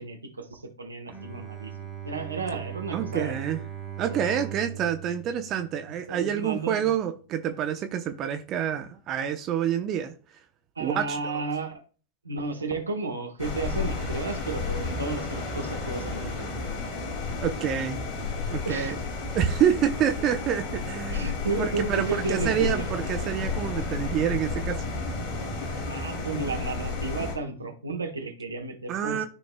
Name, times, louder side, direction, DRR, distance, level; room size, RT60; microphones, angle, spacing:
voice 1, 0.0-3.4 4.1-4.3 6.1-6.9 10.8-11.8 12.2-16.5 18.6-18.9 21.1-22.9 25.9-29.3, right 3 dB, 80° right, 1.4 m, -33 dB
Bowed string instrument, 1.1-6.3, right 10 dB, 10° left, 1.8 m, -39 dB
voice 2, 2.9-3.6 4.0-10.1 10.8-11.4 17.4-18.0 18.5-19.0 19.3-24.8 25.6-25.9 28.9-29.3, right 9 dB, 35° right, 0.8 m, -28 dB
sound 1, 13.4-27.4, left 4 dB, 35° left, 2.5 m, -32 dB
13.0 x 5.2 x 2.3 m
figure-of-eight pair, 90°, 0 cm